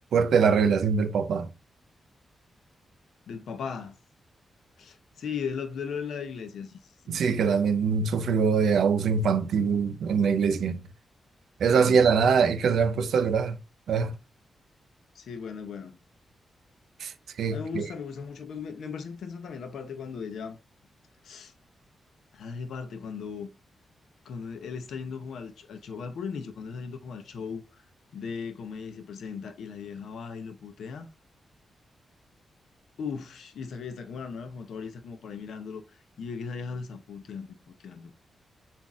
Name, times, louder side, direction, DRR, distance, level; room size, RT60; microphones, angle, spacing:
voice 1, 0.1-1.5 7.1-10.8 11.6-13.5 13.9-14.1 17.0-17.9, right 6 dB, 85° right, 0.6 m, -23 dB
voice 2, 3.3-4.0 4.8-7.2 11.7-12.1 15.1-16.0 17.5-20.6 21.2-21.5 22.3-23.5 24.2-27.6 28.1-31.1 33.0-38.2, left 6 dB, 85° left, 0.7 m, -37 dB
7.2 x 2.6 x 2.5 m
wide cardioid pair, 115°, 0 cm